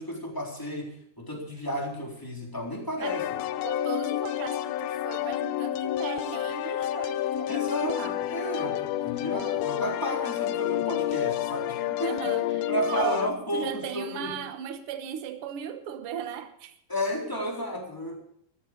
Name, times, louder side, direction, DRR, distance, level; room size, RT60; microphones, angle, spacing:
voice 1, 0.0-3.4 7.5-12.4 12.7-14.4 16.9-18.2, equal, 5° left, -1 dB, 3.3 m, -33 dB
sound 1, 3.0-13.3, left 13 dB, 80° left, 2.6 m, -29 dB
voice 2, 3.6-8.2 12.0-13.2 13.5-16.7, right 9 dB, 85° right, 8 dB, 1.2 m, -37 dB
15.0 x 14.5 x 5.2 m, 0.69 s
omnidirectional pair, 4.4 m